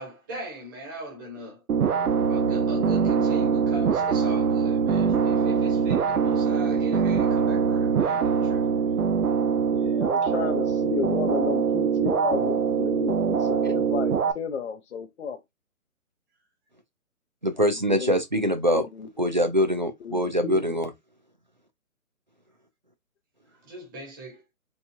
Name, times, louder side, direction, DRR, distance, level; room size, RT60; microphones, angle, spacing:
voice 1, 0.0-1.6 2.3-8.7 23.6-24.5, right 1 dB, 15° right, 1.0 m, -39 dB
sound 1, 1.7-14.3, right 6 dB, 85° right, 0.7 m, -23 dB
voice 2, 9.7-15.4 17.9-18.2 18.7-19.1 20.0-20.8, left 6 dB, 50° left, 0.7 m, -32 dB
voice 3, 17.4-18.9 19.2-20.9, equal, 35° right, 0.4 m, -23 dB
4.3 x 2.2 x 2.5 m
hypercardioid pair, 165°, 43 cm